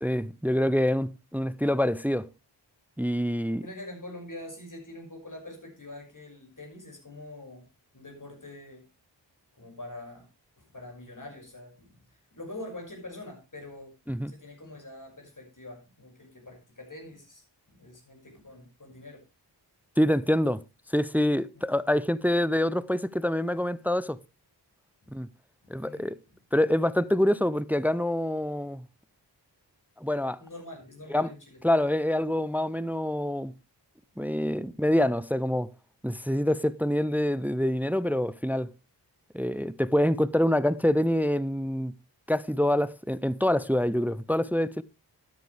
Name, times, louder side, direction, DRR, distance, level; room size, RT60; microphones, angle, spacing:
voice 1, 0.0-2.3 3.0-3.6 14.1-14.3 20.0-20.6 20.9-24.2 25.1-25.3 25.7-26.2 26.5-28.8 30.0-30.4 31.1-31.3 31.6-33.5 34.2-35.7 36.0-38.7 39.3-41.9 42.3-44.8, left 1 dB, 5° right, 0.5 m, -26 dB
voice 2, 3.6-7.7 7.9-8.9 9.6-10.3 10.6-14.0 14.3-19.2 21.5-21.7 25.0-25.2 25.6-26.4 30.4-31.6 34.1-34.3, left 1 dB, 45° left, 5.9 m, -45 dB
13.0 x 9.5 x 3.3 m
cardioid pair, 45°, 43 cm